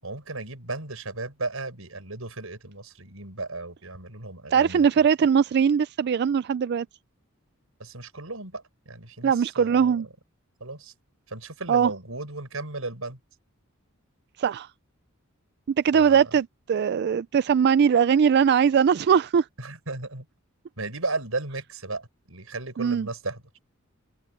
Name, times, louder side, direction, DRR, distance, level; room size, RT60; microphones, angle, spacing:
voice 1, 0.0-4.8 7.8-10.0 10.6-10.9 11.3-13.2 15.9-16.2 19.6-20.3 20.8-23.4, right 3 dB, 85° right, 5.7 m, -35 dB
voice 2, 4.5-6.9 9.2-10.1 11.7-11.9 14.4-14.7 15.7-19.5 22.8-23.1, right 7 dB, 55° right, 0.3 m, -21 dB
open air
head